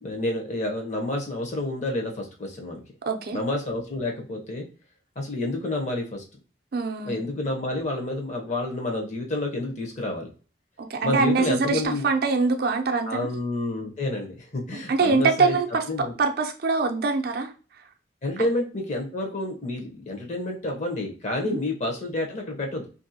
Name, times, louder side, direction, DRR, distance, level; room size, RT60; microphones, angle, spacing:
voice 1, 0.0-2.8 3.3-4.7 5.2-6.2 7.0-10.3 11.0-12.1 13.1-15.6 15.9-16.1 18.2-22.9, left 2 dB, 45° left, 0.8 m, -29 dB
voice 2, 3.1-3.4 6.7-7.2 10.8-13.3 14.7-17.5 18.4-18.5 21.4-21.6, right 4 dB, 60° right, 0.5 m, -24 dB
2.8 x 2.6 x 2.7 m
head